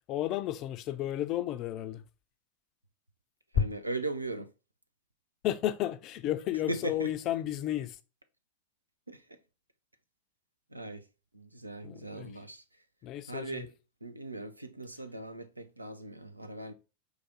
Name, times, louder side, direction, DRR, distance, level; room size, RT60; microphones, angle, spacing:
voice 1, 0.1-2.0 5.4-8.0 11.8-12.3 13.0-13.7, left 13 dB, 35° left, 0.4 m, -33 dB
voice 2, 3.5-4.5 6.7-7.1 9.1-9.2 10.7-11.0 11.3-12.6 13.3-13.7 14.0-16.7, right 2 dB, 85° right, 0.4 m, -38 dB
4.9 x 2.3 x 4.1 m
figure-of-eight pair, 90°, 0 cm